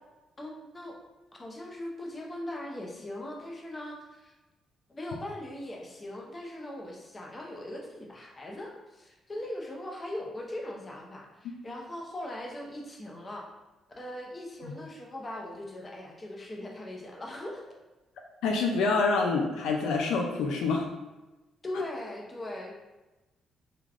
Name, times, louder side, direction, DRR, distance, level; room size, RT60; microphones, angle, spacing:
voice 1, 0.4-1.0 1.3-4.3 4.9-13.5 14.0-17.6 21.6-22.7, left 1 dB, 25° left, -1 dB, 0.6 m, -40 dB
voice 2, 18.4-20.9, left 4 dB, 85° left, 1 dB, 0.4 m, -26 dB
3.3 x 2.2 x 2.4 m, 1.1 s
cardioid pair, 90°, 0 cm